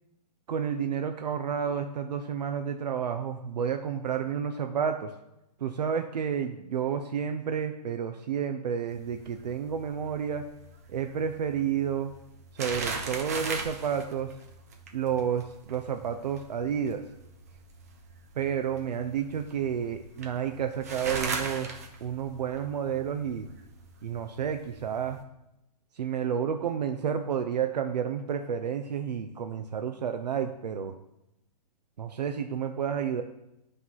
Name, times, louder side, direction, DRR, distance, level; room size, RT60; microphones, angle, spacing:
voice 1, 0.5-5.1 5.6-10.5 10.9-12.1 12.5-14.3 14.9-17.1 18.3-21.7 22.0-23.5 24.0-25.2 25.9-30.9 32.0-33.2, right 8 dB, 80° right, 6 dB, 0.6 m, -30 dB
sound 1, 8.9-25.2, right 4 dB, 25° right, 0.5 m, -40 dB
9.3 x 3.3 x 5.6 m, 0.87 s
hypercardioid pair, 175°, 21 cm